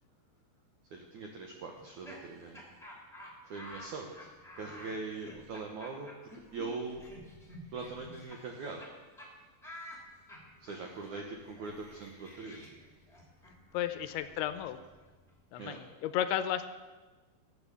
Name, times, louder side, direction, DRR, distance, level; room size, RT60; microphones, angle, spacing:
voice 1, 0.9-2.7 3.4-4.3 4.6-6.1 6.5-7.0 7.7-8.8 10.6-12.6 15.6-15.8, right 4 dB, 75° right, 2 dB, 1.7 m, -41 dB
Laughter, 1.7-8.9 9.2-9.3 9.6-15.3, left 1 dB, ahead, 1.5 m, -51 dB
voice 2, 13.7-14.8 15.5-16.7, left 11 dB, 80° left, 11 dB, 2.4 m, -33 dB
14.0 x 8.9 x 7.0 m, 1.3 s
omnidirectional pair, 5.0 m